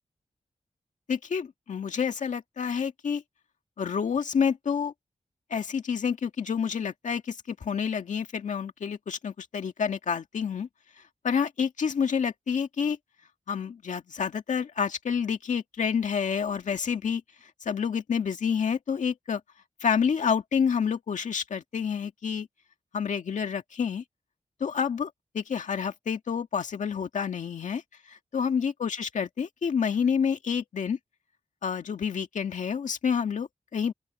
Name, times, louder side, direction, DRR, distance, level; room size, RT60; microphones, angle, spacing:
voice 1, 1.1-3.2 3.8-4.9 5.5-10.7 11.2-13.0 13.5-17.2 17.6-19.4 19.8-22.5 22.9-24.0 24.6-27.8 28.1-31.0 31.6-33.9, left 6 dB, 85° left, 2.0 m, -28 dB
open air
wide cardioid pair, 145°, 12 cm